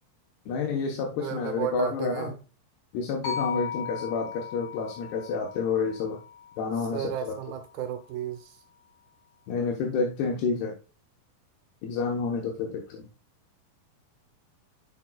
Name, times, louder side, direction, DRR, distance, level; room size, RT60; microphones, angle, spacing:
voice 1, 0.5-2.3 2.9-6.2 6.6-7.4 9.5-10.7 11.8-13.0, left 5 dB, 80° left, 3.2 m, -29 dB
voice 2, 1.2-2.4 6.9-8.6, right 10 dB, 75° right, 2.5 m, -33 dB
sound 1, 3.2-7.4, left 7 dB, 45° left, 2.1 m, -37 dB
10.5 x 5.1 x 2.3 m
omnidirectional pair, 4.7 m